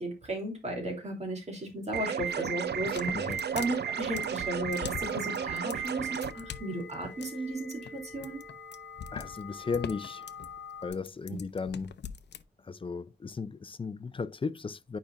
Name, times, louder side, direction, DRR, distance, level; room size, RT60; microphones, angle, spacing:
voice 1, 0.0-8.4 11.3-11.4, right 1 dB, 40° right, 2.9 m, -35 dB
sound 1, 1.9-6.3, right 8 dB, 75° right, 0.5 m, -33 dB
sound 2, 2.2-10.9, left 5 dB, 10° left, 3.5 m, -46 dB
sound 3, 2.7-12.4, left 8 dB, 90° left, 0.6 m, -43 dB
voice 2, 2.8-3.4 9.1-10.3 10.8-12.0 12.7-15.0, left 5 dB, 30° left, 0.4 m, -36 dB
9.3 x 5.1 x 2.5 m
wide cardioid pair, 125°, 17 cm